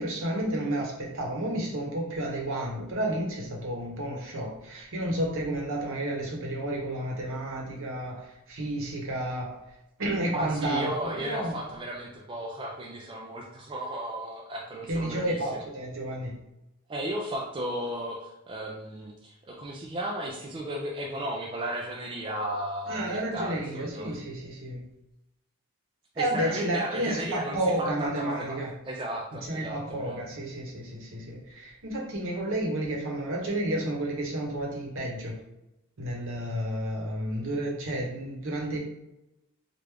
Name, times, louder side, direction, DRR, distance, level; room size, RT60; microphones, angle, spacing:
voice 1, 0.0-9.5 10.0-11.6 14.9-16.3 22.9-24.8 26.2-28.7 29.4-35.4 36.0-38.8, right 1 dB, 60° right, -1 dB, 0.9 m, -31 dB
voice 2, 10.3-15.6 16.9-24.2 26.2-30.2, right 1 dB, 25° right, -2 dB, 0.3 m, -35 dB
3.3 x 2.4 x 3.3 m, 0.89 s
head